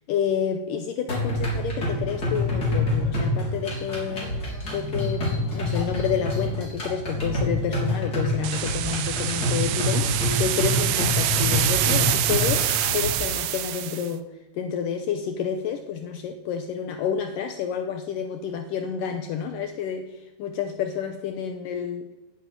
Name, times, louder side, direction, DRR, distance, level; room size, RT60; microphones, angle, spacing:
voice 1, 0.0-4.3 4.7-14.2 14.5-22.1, left 7 dB, 80° left, 7 dB, 2.0 m, -29 dB
sound 1, 1.1-13.1, left 1 dB, 25° left, 3.8 m, -27 dB
sound 2, 8.4-14.1, right 13 dB, 80° right, 2.3 m, -26 dB
10.5 x 8.5 x 9.1 m, 1.0 s
omnidirectional pair, 4.6 m